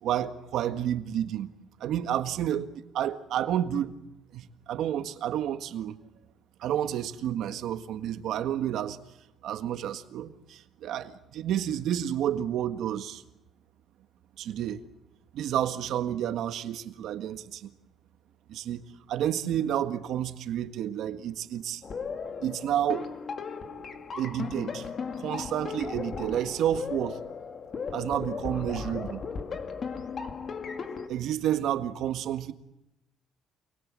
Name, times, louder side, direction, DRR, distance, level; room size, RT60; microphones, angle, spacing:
voice 1, 0.0-1.5 1.8-4.0 4.3-6.0 6.6-9.0 9.4-13.2 14.4-14.8 15.3-17.7 18.5-21.8 22.4-23.1 24.2-24.9 25.2-27.2 27.9-29.2 31.1-32.5, right 10 dB, 70° right, 1.6 m, -30 dB
sound 1, 21.8-31.1, left 5 dB, 35° left, 2.1 m, -36 dB
28.5 x 22.0 x 7.6 m
cardioid pair, 150°, 0 cm